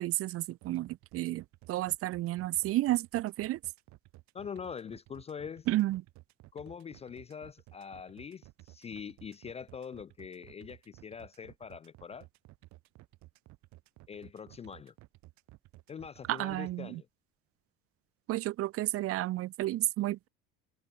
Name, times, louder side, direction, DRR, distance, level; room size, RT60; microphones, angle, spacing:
voice 1, 0.0-1.4 1.7-3.6 5.7-6.0 16.3-17.0 18.3-20.3, right 16 dB, 45° right, 0.7 m, -31 dB
sound 1, 0.6-16.7, right 18 dB, 65° right, 2.7 m, -55 dB
voice 2, 4.3-5.7 6.5-12.3 14.1-14.9 15.9-17.1, left 7 dB, 20° left, 0.4 m, -43 dB
cardioid pair, 125°, 31 cm